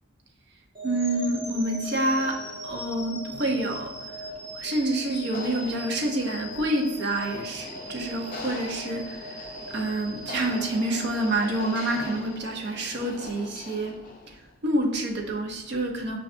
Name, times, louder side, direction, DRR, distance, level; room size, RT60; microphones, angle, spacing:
sound 1, 0.7-12.9, equal, 25° right, 1.2 m, -40 dB
voice 1, 0.8-2.4 2.6-4.1 4.5-14.0 14.3-16.2, right 1 dB, 55° right, 1 dB, 0.6 m, -28 dB
sound 2, 2.2-14.5, left 2 dB, 40° left, 0.4 m, -43 dB
5.9 x 2.3 x 2.5 m, 0.99 s
head